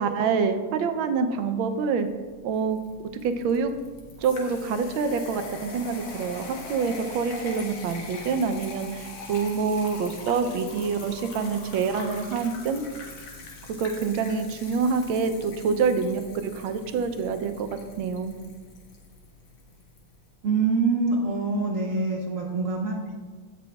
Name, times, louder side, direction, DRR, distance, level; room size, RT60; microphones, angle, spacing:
voice 1, 0.0-2.1 2.4-2.8 3.2-3.7 4.2-12.8 13.7-17.7 18.0-18.3, right 5 dB, 75° right, 8 dB, 1.4 m, -26 dB
sound 1, 2.0-20.1, left 3 dB, 85° left, 2.2 m, -42 dB
voice 2, 20.4-23.2, right 3 dB, 55° right, -1 dB, 0.9 m, -25 dB
15.5 x 6.1 x 2.3 m, 1.5 s
omnidirectional pair, 2.3 m